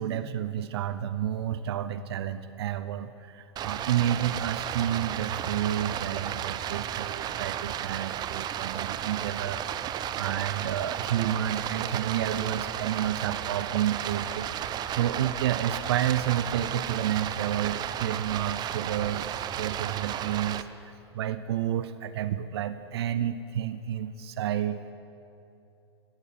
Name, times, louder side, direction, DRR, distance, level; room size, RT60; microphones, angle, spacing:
voice 1, 0.0-14.5 14.9-24.9, right 10 dB, 65° right, 13 dB, 0.7 m, -30 dB
Stream, 3.6-20.6, right 10 dB, 30° right, 0.6 m, -33 dB
16.0 x 11.5 x 7.4 m, 2.7 s
hypercardioid pair, 100°, 15 cm